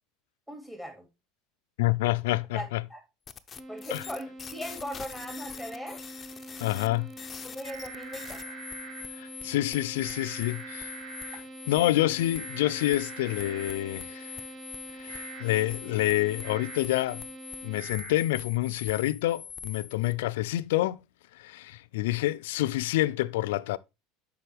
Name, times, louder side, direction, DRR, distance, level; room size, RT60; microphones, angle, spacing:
voice 1, 0.5-1.1 2.5-3.0 3.7-6.0 7.4-8.6, equal, 5° right, 2.6 m, -39 dB
voice 2, 1.8-2.8 3.9-4.0 6.6-7.1 9.2-10.9 11.7-14.4 15.0-17.2 17.6-21.0 21.4-23.8, left 16 dB, 85° left, 0.4 m, -28 dB
sound 1, 3.3-20.1, left 6 dB, 30° left, 0.6 m, -44 dB
sound 2, 3.6-17.8, right 1 dB, 30° right, 1.6 m, -45 dB
sound 3, 7.6-9.0 10.0-11.4 12.3-13.7 15.1-15.4 16.4-16.8 17.8-18.1, right 3 dB, 85° right, 4.0 m, -43 dB
7.7 x 5.5 x 3.4 m
supercardioid pair, 105°, 0 cm